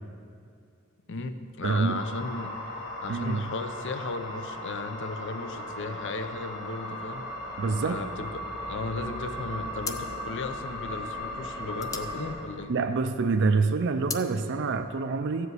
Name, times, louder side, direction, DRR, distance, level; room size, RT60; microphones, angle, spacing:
voice 1, 1.1-2.6 3.0-7.2 7.8-8.3 8.7-12.7, left 3 dB, 60° left, 9 dB, 0.6 m, -35 dB
voice 2, 1.6-2.0 3.1-3.4 7.6-8.0 12.7-15.5, right 4 dB, 55° right, 7 dB, 0.4 m, -26 dB
sound 1, 1.9-12.3, left 1 dB, 85° left, 2.9 m, -37 dB
sound 2, 9.1-9.4 9.8-13.2 13.5-14.3, left 4 dB, 15° left, 0.4 m, -39 dB
13.5 x 5.0 x 8.0 m, 2.5 s
head